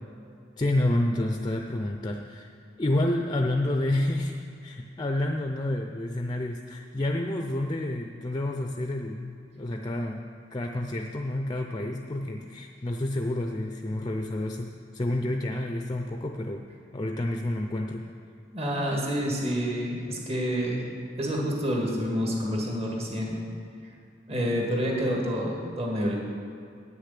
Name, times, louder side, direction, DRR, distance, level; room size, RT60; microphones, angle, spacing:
voice 1, 0.6-2.5 2.8-10.2 10.5-16.7 16.9-18.1, left 1 dB, 25° left, 4 dB, 0.5 m, -29 dB
voice 2, 18.5-20.9 21.2-23.4 24.3-26.2, equal, 35° right, -2 dB, 1.9 m, -28 dB
9.3 x 6.6 x 8.2 m, 2.5 s
head